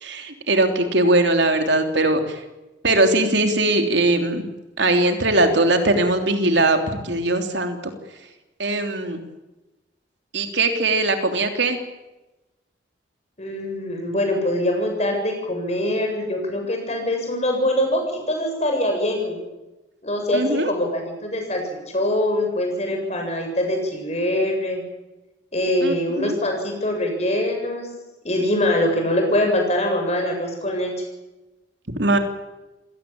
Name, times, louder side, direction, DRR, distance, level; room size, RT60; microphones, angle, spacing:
voice 1, 0.0-2.4 2.8-4.4 4.8-6.8 7.0-7.9 8.6-9.2 10.3-11.8 20.3-20.7 25.8-26.4 32.0-32.2, right 2 dB, 70° right, 6 dB, 3.2 m, -20 dB
voice 2, 13.4-19.4 20.0-21.6 21.9-24.8 25.5-27.9 28.2-30.9, left 1 dB, 35° left, 3 dB, 7.7 m, -23 dB
27.5 x 18.0 x 8.8 m, 1.0 s
head